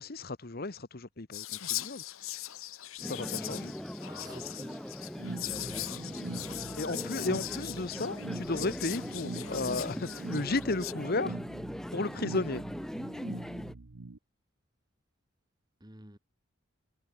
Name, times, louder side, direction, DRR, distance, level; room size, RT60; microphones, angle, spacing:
voice 1, 0.0-2.0 3.0-3.7 6.7-11.4 11.9-12.6, left 2 dB, 45° left, 1.1 m, -34 dB
Whispering, 1.3-10.9, left 15 dB, 85° left, 1.1 m, -40 dB
sound 1, 3.0-13.7, equal, ahead, 0.3 m, -40 dB
voice 2, 4.0-5.0 5.6-6.6 15.8-16.2, right 1 dB, 20° right, 2.7 m, -51 dB
sound 2, 5.2-14.2, right 2 dB, 90° right, 1.0 m, -43 dB
head